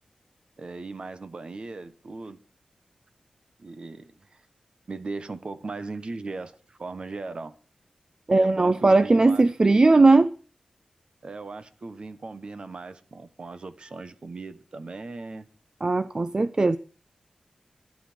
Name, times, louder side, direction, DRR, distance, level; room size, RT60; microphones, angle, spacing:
voice 1, 0.6-2.4 3.6-4.4 4.9-7.5 8.3-9.9 11.2-15.5, right 3 dB, 50° right, 1.4 m, -38 dB
voice 2, 8.3-10.3 15.8-16.8, right 3 dB, 35° right, 0.6 m, -18 dB
12.0 x 11.5 x 6.3 m
wide cardioid pair, 85°, 2 cm